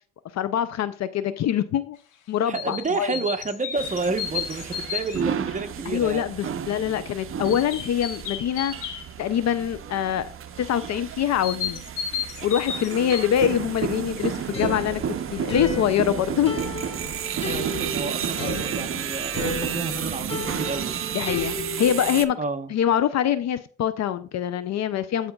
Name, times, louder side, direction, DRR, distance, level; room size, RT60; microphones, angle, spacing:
voice 1, 0.3-2.0 2.3-3.1 5.9-10.3 10.6-11.8 12.4-15.0 15.3-16.6 21.1-22.4 22.7-25.3, left 10 dB, 60° left, 0.5 m, -24 dB
voice 2, 2.4-6.5 17.4-20.9 22.4-22.7, right 4 dB, 25° right, 1.0 m, -30 dB
sound 1, 2.5-5.7 7.4-9.1 11.4-13.8 14.2-14.3, left 8 dB, 90° left, 1.0 m, -33 dB
sound 2, 3.8-22.2, right 9 dB, 45° right, 0.6 m, -32 dB
sound 3, 14.5-22.2, left 1 dB, 20° left, 3.5 m, -33 dB
14.5 x 5.0 x 2.3 m
cardioid pair, 90°, 30 cm